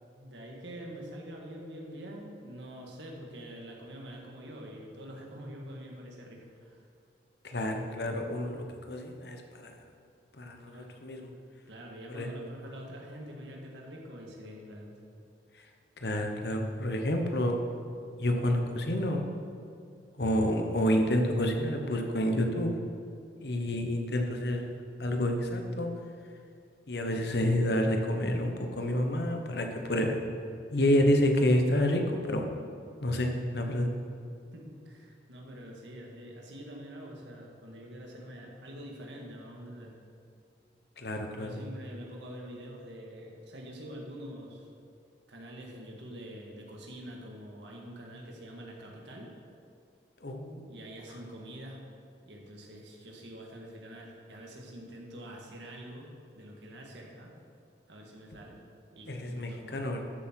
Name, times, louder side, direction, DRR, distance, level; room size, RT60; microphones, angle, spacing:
voice 1, 0.1-6.9 10.7-11.0 11.7-14.9 34.5-40.0 41.3-44.7 45.3-49.3 50.7-51.8 52.2-56.1 56.3-57.3 57.9-58.6 58.9-59.9, equal, 85° right, -1 dB, 2.0 m, -45 dB
voice 2, 7.4-9.8 10.4-11.3 12.1-12.3 15.5-15.7 16.0-17.6 18.2-19.3 20.2-22.7 23.4-24.7 25.0-25.9 26.9-30.2 30.7-32.4 33.0-33.9 41.0-41.6 50.2-50.7 59.1-60.0, left 1 dB, 65° left, 3 dB, 1.2 m, -29 dB
13.0 x 7.6 x 4.6 m, 2.4 s
head